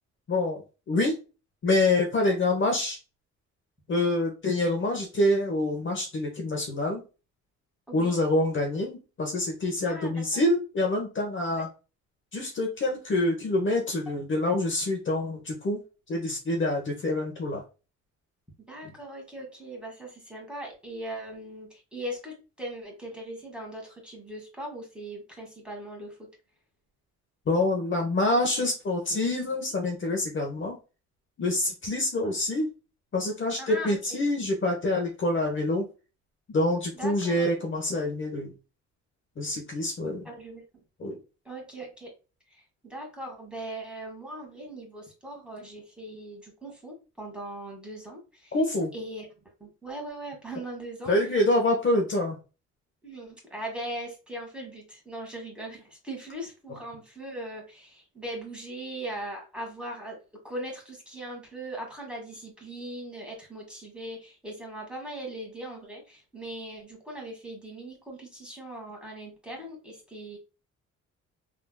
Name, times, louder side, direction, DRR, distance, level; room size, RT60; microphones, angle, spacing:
voice 1, 0.3-0.6 0.9-1.2 1.6-3.0 3.9-7.0 7.9-11.7 12.3-15.8 16.1-17.6 27.5-30.8 31.4-32.7 33.1-35.9 36.5-38.5 39.4-40.3 41.0-41.2 48.5-48.9 51.1-52.4, left 2 dB, 40° left, 1 dB, 0.9 m, -26 dB
voice 2, 7.9-8.2 9.8-10.4 11.6-11.7 18.7-26.3 32.2-32.4 33.6-34.0 36.9-37.5 40.2-40.6 41.5-42.1 42.5-48.6 48.9-49.3 49.6-51.1 53.0-60.2 60.4-70.4, right 1 dB, 5° right, -1 dB, 1.8 m, -39 dB
3.5 x 2.8 x 2.3 m, 0.31 s
cardioid pair, 90°, 30 cm